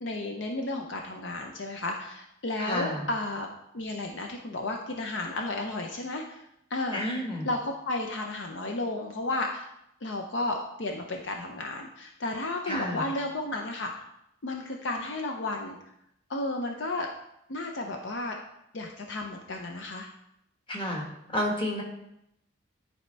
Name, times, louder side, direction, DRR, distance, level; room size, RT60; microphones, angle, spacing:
voice 1, 0.0-3.5 3.7-6.4 6.7-9.7 10.0-14.0 14.4-15.8 16.3-17.1 17.5-18.4 18.7-20.1, left 2 dB, 60° left, 2 dB, 0.6 m, -33 dB
voice 2, 2.6-3.0 6.9-7.5 12.7-13.0 20.7-21.0 21.3-21.8, left 1 dB, 25° left, -1 dB, 1.5 m, -30 dB
11.0 x 4.2 x 3.4 m, 0.79 s
head